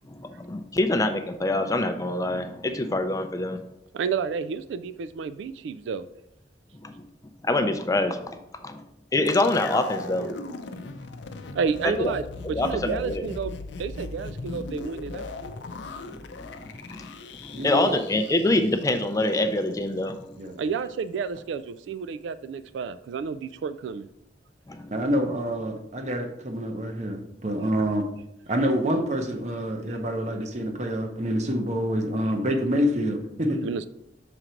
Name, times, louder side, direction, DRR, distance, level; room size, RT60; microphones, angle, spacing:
voice 1, 0.1-3.6 6.8-6.9 7.4-8.8 9.1-10.4 11.8-12.1 12.4-13.3 16.4-17.1 17.4-20.4 24.7-25.0, left 2 dB, 20° left, 7 dB, 0.4 m, -26 dB
voice 2, 3.9-6.0 11.5-13.5 13.8-15.3 20.6-24.1 33.6-33.9, right 5 dB, 85° right, 13 dB, 0.3 m, -30 dB
sound 1, 9.3-19.4 19.7-19.8, left 3 dB, 80° left, 0.5 m, -38 dB
voice 3, 17.5-17.9 20.3-20.6 24.9-28.0 28.5-33.6, equal, 40° right, 4 dB, 0.8 m, -27 dB
6.0 x 3.9 x 4.4 m, 0.82 s
head